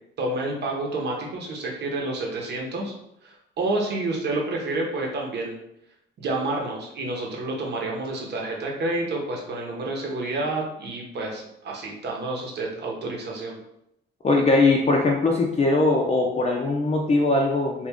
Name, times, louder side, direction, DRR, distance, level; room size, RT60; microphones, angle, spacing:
voice 1, 0.2-2.9 3.2-5.6 6.2-13.6, right 2 dB, 60° right, -1 dB, 0.9 m, -29 dB
voice 2, 14.2-17.9, left 2 dB, 30° left, -1 dB, 0.5 m, -21 dB
3.0 x 2.4 x 3.5 m, 0.80 s
cardioid pair, 90°, 20 cm